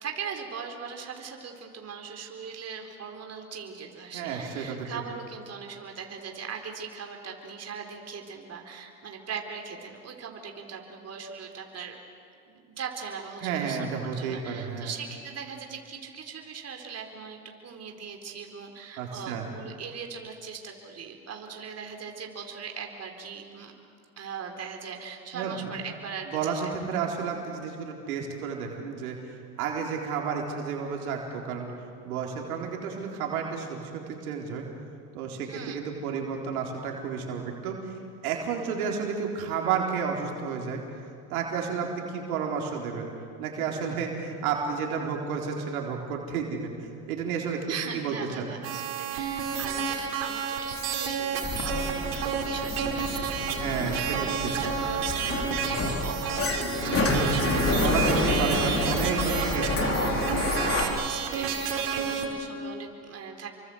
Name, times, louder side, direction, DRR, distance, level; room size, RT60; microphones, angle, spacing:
voice 1, 0.0-12.0 12.5-23.7 24.2-26.6 35.4-35.9 47.7-51.5 51.8-58.9 59.2-59.7 61.0-63.5, right 6 dB, 35° right, 3 dB, 4.1 m, -40 dB
voice 2, 4.1-5.0 13.4-14.9 19.0-19.4 25.3-25.6 26.3-29.2 29.6-31.7 32.0-34.6 35.1-37.9 38.2-40.8 41.3-43.1 43.4-48.5 53.6-54.5 57.8-60.3, right 6 dB, 80° right, 0 dB, 4.3 m, -31 dB
sound 1, 48.6-62.3, right 6 dB, 55° right, 5.3 m, -30 dB
Sliding door, 51.4-60.8, left 3 dB, 30° left, 4.2 m, -29 dB
29.5 x 24.0 x 8.0 m, 2.4 s
hypercardioid pair, 85°, 42 cm